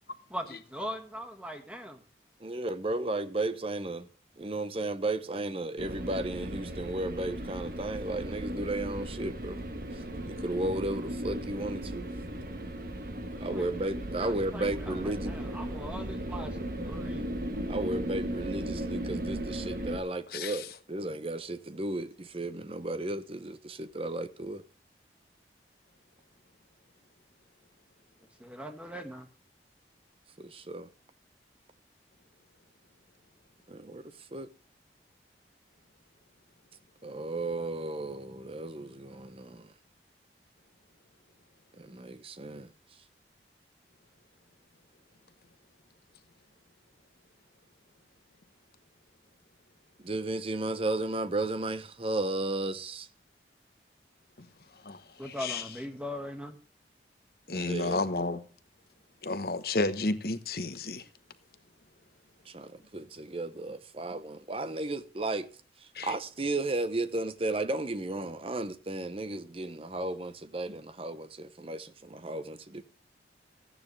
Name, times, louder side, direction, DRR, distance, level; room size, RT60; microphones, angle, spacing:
voice 1, 0.3-2.0 13.5-17.3 28.4-29.3 55.2-56.6, equal, 5° right, 1.7 m, -40 dB
voice 2, 2.4-4.1 4.4-9.6 9.9-12.0 13.4-15.3 17.7-24.6 30.4-30.9 33.7-34.0 34.3-34.5 37.0-39.7 41.8-42.7 50.0-53.1 57.5-58.0 62.5-65.5 65.8-72.8, right 2 dB, 30° right, 0.8 m, -34 dB
sound 1, 5.8-20.0, right 1 dB, 50° right, 1.2 m, -36 dB
voice 3, 20.3-20.7 54.4-54.5 54.8-55.0 55.4-55.6 57.5-58.4 59.2-61.0 65.9-66.1, left 2 dB, 55° left, 1.0 m, -31 dB
14.0 x 9.8 x 3.3 m
head